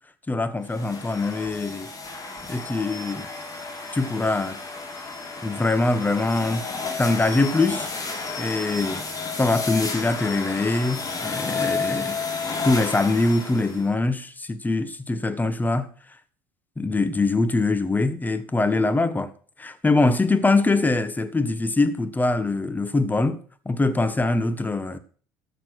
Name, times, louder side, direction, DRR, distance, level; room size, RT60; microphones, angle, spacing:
voice 1, 0.3-1.9 2.5-3.3 3.9-4.6 5.4-6.6 7.0-7.9 8.4-9.0 9.4-12.2 12.6-15.9 16.8-19.3 19.6-25.0, left 2 dB, 15° left, 1.4 m, -23 dB
sound 1, 0.6-13.9, left 4 dB, 30° left, 3.5 m, -32 dB
13.5 x 6.8 x 6.3 m
hypercardioid pair, 75°, 11 cm